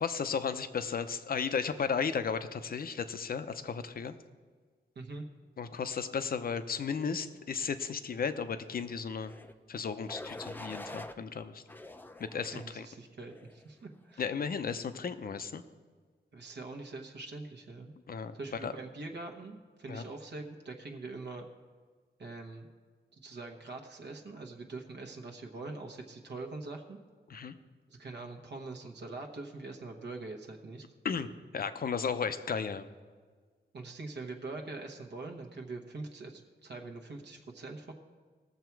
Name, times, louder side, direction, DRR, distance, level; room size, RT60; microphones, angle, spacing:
voice 1, 0.0-4.1 5.6-9.3 9.7-11.6 12.2-12.9 14.2-15.6 18.1-18.3 18.6-18.7 19.9-20.0 27.3-27.6 31.0-32.9, left 6 dB, 55° left, 11 dB, 0.6 m, -34 dB
voice 2, 4.9-5.2 12.4-14.2 16.3-17.9 18.3-21.5 22.2-22.7 23.1-27.0 27.9-30.8 33.7-37.9, right 3 dB, 65° right, 3 dB, 1.1 m, -43 dB
sound 1, 9.2-9.5 10.1-11.2 11.7-12.7 13.3-13.7, left 1 dB, 10° left, 0.4 m, -45 dB
18.5 x 7.1 x 4.6 m, 1.5 s
wide cardioid pair, 165°, 19 cm